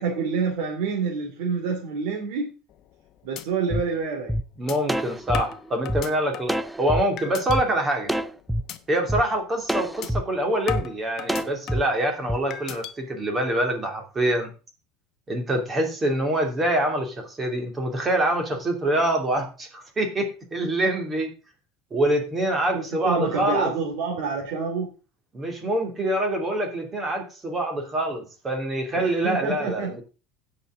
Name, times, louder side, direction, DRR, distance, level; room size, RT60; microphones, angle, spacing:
voice 1, 0.0-2.5 3.2-4.3 22.7-24.9 28.9-30.0, right 5 dB, 75° right, 0 dB, 2.6 m, -27 dB
sound 1, 2.7-3.0 3.4-3.5 3.9-4.0 4.7-4.8 5.3-6.6 7.2-7.6 8.0-8.3 8.7-8.8 9.2-9.4 10.0-10.1 10.7-11.9 12.5-12.9, left 11 dB, 45° left, 0.9 m, -35 dB
sound 2, 3.7-3.8 4.3-4.4 4.9-6.0 6.5-7.0 7.5-7.6 8.1-8.6 9.1-9.2 9.7-10.2 10.7-10.8 11.3-11.8 12.3-12.4, equal, 5° right, 0.4 m, -26 dB
voice 2, 4.6-8.1 8.9-14.5 15.3-21.3 21.9-23.7 25.3-30.0, right 1 dB, 20° right, 3 dB, 2.7 m, -25 dB
15.5 x 5.9 x 3.8 m, 0.33 s
supercardioid pair, 145°, 0 cm